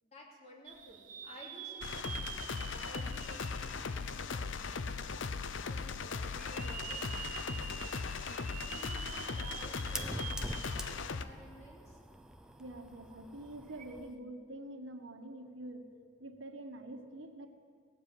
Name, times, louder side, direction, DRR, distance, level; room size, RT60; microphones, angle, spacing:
voice 1, 0.0-12.0 13.1-13.2, equal, 35° left, -2 dB, 2.9 m, -54 dB
sound 1, 0.6-4.6 5.1-5.2 6.3-11.2 11.6-11.7 13.7-13.8, right 7 dB, 40° right, 1.2 m, -46 dB
sound 2, 1.8-11.2, left 4 dB, 70° left, 0.6 m, -38 dB
Fire, 8.2-14.2, right 1 dB, 5° right, 0.5 m, -46 dB
voice 2, 12.6-15.9 16.2-17.5, right 1 dB, 85° right, 5 dB, 1.4 m, -46 dB
17.0 x 7.4 x 9.1 m, 2.1 s
head